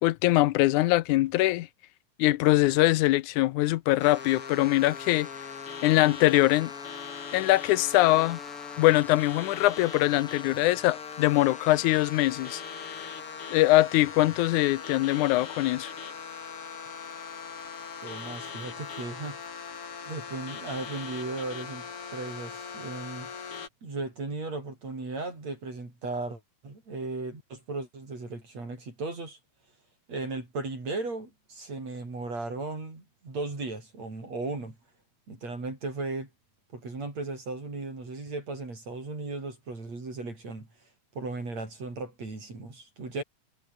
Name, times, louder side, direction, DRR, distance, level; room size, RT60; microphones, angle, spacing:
voice 1, 0.0-1.7 2.2-5.3 5.8-6.7 7.3-8.4 8.8-12.6 13.0-13.1 13.5-15.9, left 17 dB, 85° left, 2.2 m, -23 dB
sound 1, 4.0-23.7, left 6 dB, 50° left, 3.6 m, -40 dB
voice 2, 18.0-19.4 20.1-21.8 22.1-23.3 23.8-29.4 30.1-34.8 35.3-36.3 36.7-40.7 41.1-43.2, right 3 dB, 60° right, 8.5 m, -36 dB
omnidirectional pair, 3.4 m